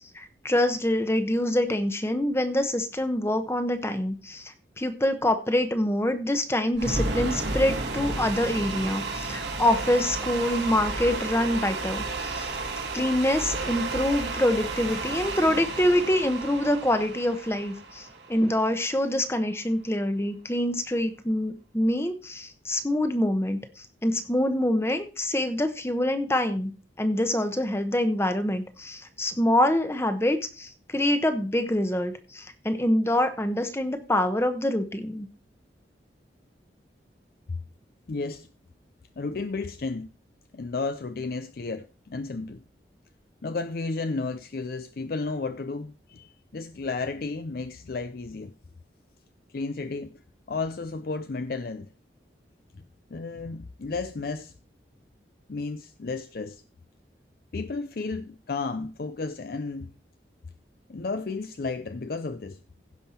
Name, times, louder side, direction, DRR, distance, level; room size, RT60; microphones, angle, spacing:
voice 1, 0.1-12.5 12.9-26.7 27.0-35.3, left 1 dB, 15° left, 0.9 m, -25 dB
sound 1, 6.7-18.9, right 3 dB, 80° right, 2.1 m, -32 dB
voice 2, 38.1-38.5 39.2-40.1 40.5-42.6 43.4-48.5 49.5-50.2 50.5-51.9 52.7-52.8 53.1-54.5 55.5-56.6 57.5-59.9 60.9-62.6, left 3 dB, 55° left, 0.5 m, -33 dB
16.0 x 5.5 x 4.3 m
head